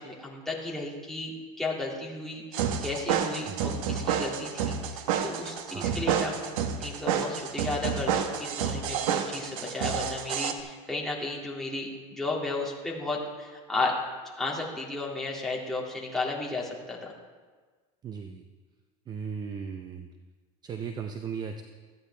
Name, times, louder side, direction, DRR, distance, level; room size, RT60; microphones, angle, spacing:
voice 1, 0.0-1.3 1.6-6.5 6.8-13.9 14.4-17.1, left 2 dB, ahead, -4 dB, 2.2 m, -34 dB
sound 1, 2.5-10.5, right 7 dB, 80° right, 1.0 m, -29 dB
voice 2, 5.7-6.0 18.0-18.4 19.1-20.1 20.6-21.6, right 6 dB, 25° right, 6 dB, 0.5 m, -37 dB
14.5 x 9.9 x 3.3 m, 1.4 s
supercardioid pair, 140°, 18 cm